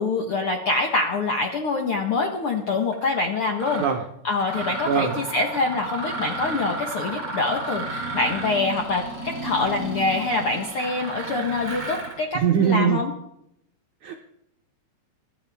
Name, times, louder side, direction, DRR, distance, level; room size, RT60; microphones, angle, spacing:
voice 1, 0.0-3.8 4.2-13.1, left 3 dB, 85° left, 2 dB, 1.2 m, -25 dB
Mechanisms, 2.9-3.1 3.6-3.9 4.4-12.2, right 2 dB, 25° right, 5.2 m, -33 dB
voice 2, 12.4-13.0 14.0-14.1, right 8 dB, 65° right, 2 dB, 2.0 m, -21 dB
23.5 x 13.0 x 3.5 m, 0.79 s
omnidirectional pair, 4.4 m